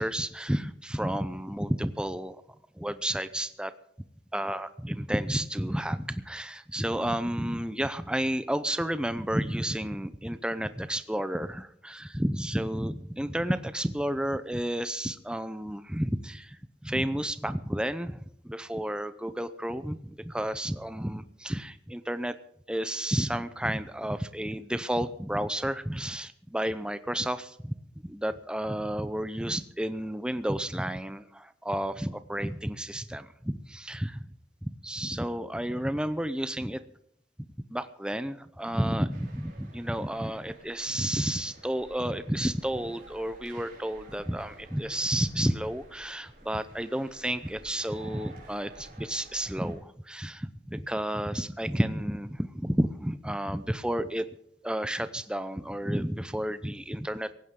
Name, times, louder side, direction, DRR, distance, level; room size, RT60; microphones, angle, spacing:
voice 1, 0.0-2.4 2.8-3.7 4.3-22.3 22.7-27.7 28.0-34.2 34.6-36.8 37.7-54.3 54.6-57.3, right 1 dB, 5° right, 12 dB, 0.6 m, -31 dB
sound 1, 39.1-49.7, right 2 dB, 50° right, 5.0 m, -52 dB
18.0 x 16.0 x 3.8 m, 0.72 s
head